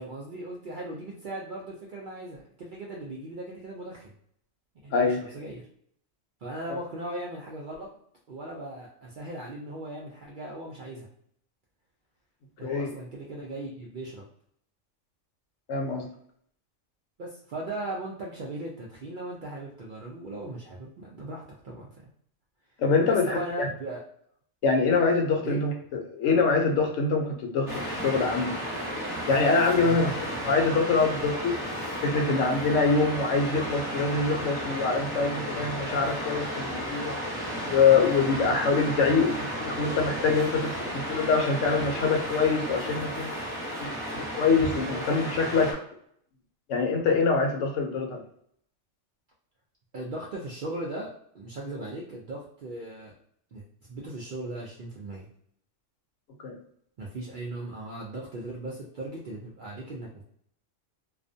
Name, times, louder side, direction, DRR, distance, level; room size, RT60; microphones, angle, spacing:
voice 1, 0.0-4.1 4.8-5.7 6.4-7.9 8.3-11.1 12.6-14.2 17.2-21.9 23.0-24.0 25.4-25.6 29.8-30.1 49.9-51.1 51.3-53.1 53.5-53.6 53.9-55.3 57.0-60.2, right 1 dB, 65° right, -3 dB, 0.5 m, -38 dB
voice 2, 15.7-16.1 22.8-23.7 24.6-28.7 29.3-30.1 30.4-31.6 32.0-37.2 37.6-43.3 43.8-45.8 46.7-48.2 56.4-56.6, left 4 dB, 75° left, 3 dB, 0.9 m, -25 dB
Waves surf, 27.7-45.7, equal, 5° right, 1.0 m, -33 dB
2.4 x 2.1 x 2.5 m, 0.67 s
omnidirectional pair, 1.3 m